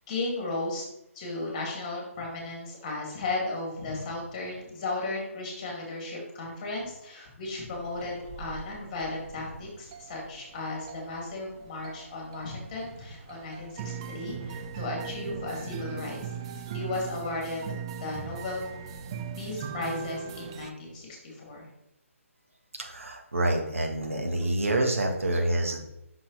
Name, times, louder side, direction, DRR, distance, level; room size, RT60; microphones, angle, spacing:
voice 1, 0.1-0.9 1.1-16.3 16.7-17.6 18.0-18.7 19.4-21.7, left 2 dB, 25° left, -2 dB, 2.3 m, -35 dB
sound 1, 7.7-20.7, right 7 dB, 20° right, 0.4 m, -40 dB
voice 2, 22.7-25.8, right 1 dB, 65° right, 2 dB, 1.4 m, -27 dB
7.1 x 6.1 x 3.2 m, 0.85 s
figure-of-eight pair, 140°, 8 cm